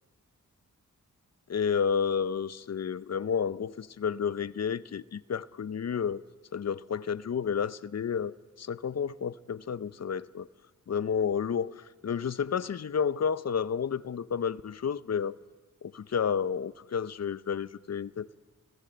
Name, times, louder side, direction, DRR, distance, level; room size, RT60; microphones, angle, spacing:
voice 1, 1.5-6.2 6.5-10.5 10.9-15.3 15.8-18.3, left 7 dB, 55° left, 0.8 m, -31 dB
29.5 x 17.5 x 7.8 m
wide cardioid pair, 80°, 31 cm